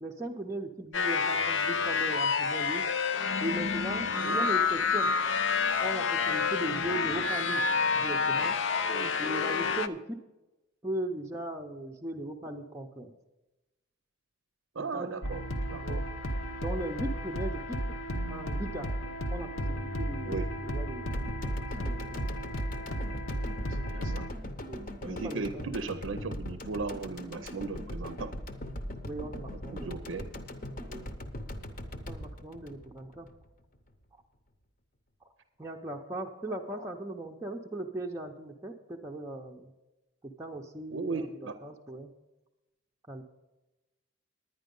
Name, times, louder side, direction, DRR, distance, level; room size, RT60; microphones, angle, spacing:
voice 1, 0.0-2.8 3.4-5.1 5.8-7.6 7.9-8.6 9.2-10.2 10.8-13.1 14.9-15.2 15.8-16.0 16.6-17.9 18.3-18.9 19.3-21.5 21.8-22.3 24.7-25.7 29.1-30.3 30.9-31.1 32.1-33.3 35.6-39.7 40.2-41.3 41.6-42.1 43.1-43.2, right 1 dB, 15° right, 0 dB, 0.5 m, -38 dB
sound 1, 0.9-9.9, left 5 dB, 65° left, 0.5 m, -28 dB
voice 2, 14.8-16.0 20.2-20.5 23.6-24.3 25.0-28.3 29.7-30.3 40.9-41.5, right 4 dB, 75° right, 10 dB, 0.6 m, -37 dB
sound 2, 15.2-24.3, equal, 85° left, 1.1 m, -34 dB
sound 3, 21.1-33.5 33.8-33.9, left 1 dB, 40° left, 0.8 m, -40 dB
10.0 x 9.9 x 5.3 m, 1.0 s
head